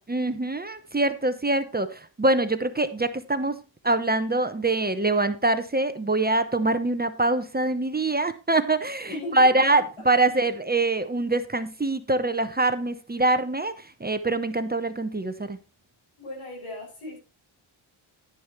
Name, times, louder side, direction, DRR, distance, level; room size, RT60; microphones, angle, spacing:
voice 1, 0.1-3.6 3.8-15.6, right 2 dB, 20° right, 0.9 m, -24 dB
voice 2, 9.1-9.6 10.2-10.3 16.2-17.2, left 2 dB, 85° left, 6.6 m, -37 dB
11.0 x 10.0 x 3.1 m
wide cardioid pair, 105°, 49 cm